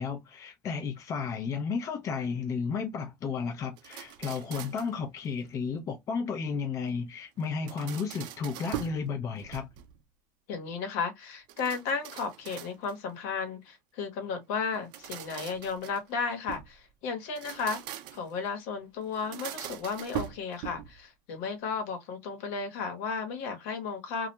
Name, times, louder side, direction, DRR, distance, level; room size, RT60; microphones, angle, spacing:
voice 1, 0.0-9.7, left 5 dB, 35° left, 0.5 m, -33 dB
sound 1, 3.8-5.0 7.4-9.0 9.4-10.0 11.5-13.1 14.7-16.7 17.2-18.4 19.1-21.0, right 11 dB, 55° right, 0.5 m, -41 dB
voice 2, 10.5-24.3, left 5 dB, 65° left, 1.0 m, -34 dB
2.3 x 2.1 x 2.8 m
supercardioid pair, 125°, 9 cm